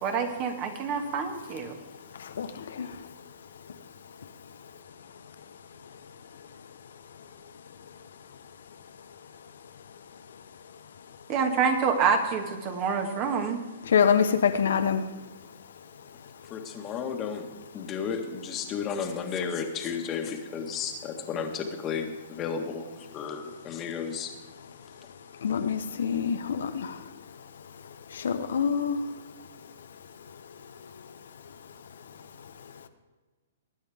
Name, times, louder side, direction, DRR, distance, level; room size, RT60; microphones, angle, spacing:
voice 1, 0.0-1.7 11.3-13.6, right 5 dB, 35° right, 5 dB, 1.8 m, -27 dB
voice 2, 13.9-15.0 25.4-26.9 28.2-29.0, left 7 dB, 75° left, 9 dB, 0.9 m, -25 dB
voice 3, 16.5-17.5 17.7-22.8 23.1-24.3, left 6 dB, 25° left, 4 dB, 1.6 m, -33 dB
20.0 x 8.9 x 3.6 m, 1.3 s
hypercardioid pair, 140°, 0 cm